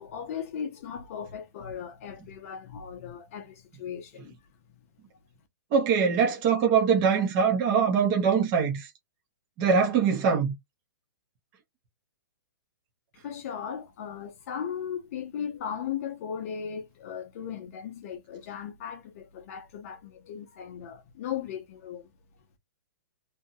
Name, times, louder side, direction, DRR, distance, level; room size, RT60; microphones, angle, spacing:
voice 1, 0.0-4.3 13.1-22.1, left 8 dB, 40° left, 0.6 m, -37 dB
voice 2, 5.7-8.9 9.6-10.5, right 6 dB, 25° right, 0.7 m, -23 dB
2.7 x 2.2 x 2.7 m
hypercardioid pair, 155°, 12 cm